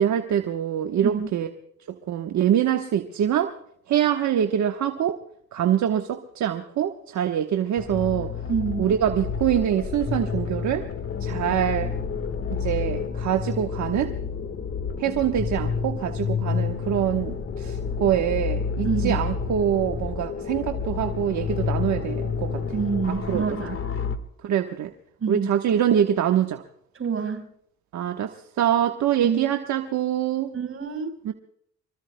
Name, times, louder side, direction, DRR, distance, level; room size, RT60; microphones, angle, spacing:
voice 1, 0.0-1.5 1.9-3.5 3.9-5.2 5.5-8.3 8.8-10.9 11.2-11.9 12.6-14.1 15.0-22.6 23.3-23.4 24.4-24.9 25.3-26.6 27.9-30.5 31.2-31.3, right 10 dB, 70° right, 1.1 m, -24 dB
sound 1, 7.8-24.2, left 6 dB, 45° left, 1.6 m, -29 dB
voice 2, 8.5-8.9 18.8-19.2 22.7-23.8 25.2-25.5 26.9-27.5 29.2-29.4 30.5-31.2, right 6 dB, 45° right, 4.7 m, -27 dB
25.0 x 23.0 x 2.2 m
cardioid pair, 90°, 30 cm